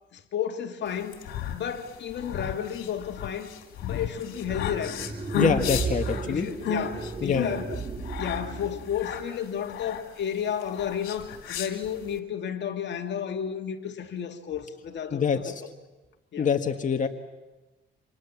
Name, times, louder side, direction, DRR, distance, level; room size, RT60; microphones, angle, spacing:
voice 1, 0.1-1.1 1.5-3.5 3.8-5.1 6.3-15.7 16.3-16.5, left 8 dB, 60° left, 5 dB, 2.2 m, -32 dB
sound 1, 1.0-12.2, left 6 dB, 85° left, 3.0 m, -34 dB
sound 2, 4.3-9.2, right 4 dB, 30° right, 2.6 m, -35 dB
voice 2, 5.4-6.5 7.2-7.5 15.1-15.5 16.4-17.1, left 6 dB, 40° left, 4 dB, 1.8 m, -25 dB
29.5 x 26.5 x 7.3 m, 1.1 s
cardioid pair, 90°, 20 cm